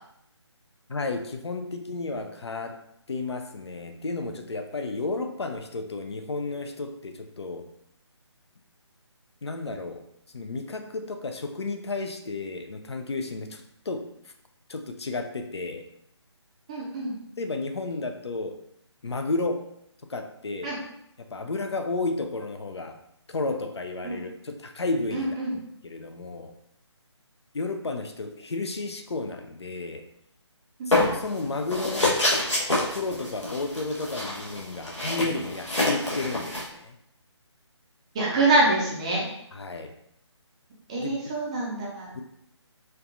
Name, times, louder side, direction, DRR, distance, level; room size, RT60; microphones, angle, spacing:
voice 1, 0.9-2.8 3.1-7.7 9.4-10.0 10.3-14.1 14.7-15.9 17.4-18.6 19.0-19.6 20.1-20.7 21.2-23.0 23.3-26.5 27.5-30.0 30.9-32.2 32.9-37.0 39.5-39.9 41.0-41.2 42.1-42.2, left 3 dB, 60° left, 6 dB, 0.5 m, -32 dB
voice 2, 16.7-17.1 20.6-20.7 24.0-24.2 25.1-25.5 30.8-31.0 38.1-39.3 40.9-42.1, right 2 dB, 10° right, -5 dB, 0.4 m, -25 dB
sound 1, 30.9-31.4 31.7-36.7, left 2 dB, 85° left, 1.2 m, -26 dB
4.5 x 2.4 x 2.5 m, 0.75 s
figure-of-eight pair, 150°, 15 cm